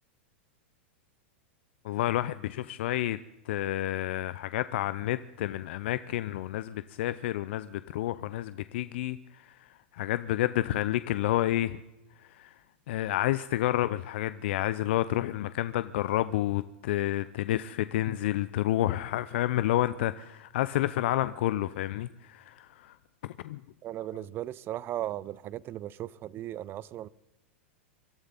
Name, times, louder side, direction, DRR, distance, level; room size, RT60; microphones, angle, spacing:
voice 1, 1.8-3.2 3.5-9.6 9.9-11.8 12.2-12.5 12.9-23.0 23.2-23.6, left 14 dB, 65° left, 0.5 m, -30 dB
voice 2, 23.8-27.1, right 13 dB, 35° right, 0.6 m, -37 dB
24.5 x 13.0 x 4.1 m
hypercardioid pair, 110°, 7 cm